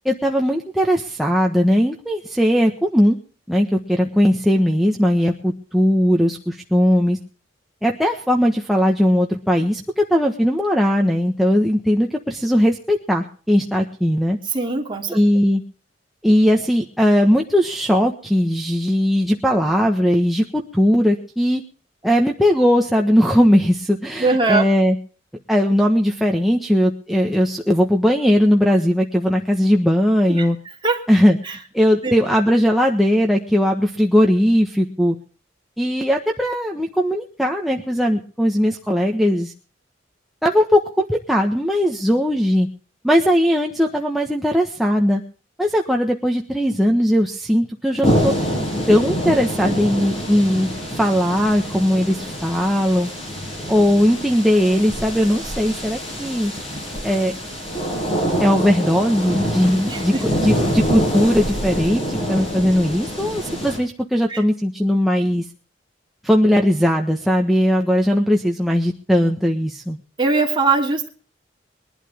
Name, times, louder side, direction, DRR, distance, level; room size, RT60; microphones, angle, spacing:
voice 1, 0.0-3.2 3.5-7.2 7.8-14.4 15.1-15.6 16.2-21.6 22.0-25.0 25.5-30.6 31.1-31.4 31.7-35.2 35.8-39.5 40.4-42.7 43.0-45.2 45.6-48.3 48.9-53.1 53.7-56.5 57.0-57.3 58.4-65.4 66.2-70.0, equal, ahead, 0 dB, 1.4 m, -18 dB
voice 2, 14.5-15.2 24.2-24.7 30.3-30.5 30.8-31.0 31.4-31.5 32.0-32.2 59.9-60.2 64.3-64.4 70.2-71.1, right 3 dB, 25° right, 1 dB, 3.1 m, -21 dB
sound 1, 48.0-63.8, equal, 35° left, 7.5 m, -25 dB
22.0 x 12.0 x 3.6 m, 0.41 s
head